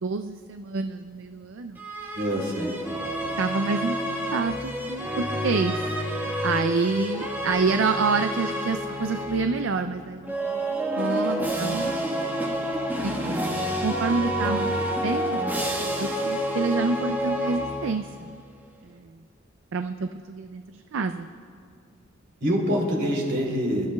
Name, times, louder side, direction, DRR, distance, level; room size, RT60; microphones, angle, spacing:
voice 1, 0.0-1.8 3.4-5.8 6.4-12.2 13.0-13.6 13.8-15.6 16.0-18.3 18.8-19.1 19.7-21.3, right 4 dB, 75° right, 8 dB, 0.4 m, -28 dB
sound 1, 1.8-9.6 10.2-18.1, equal, 10° right, 1.4 m, -28 dB
voice 2, 2.1-2.7 22.4-23.9, equal, 60° right, -2 dB, 3.3 m, -25 dB
27.0 x 13.0 x 2.3 m, 2.2 s
head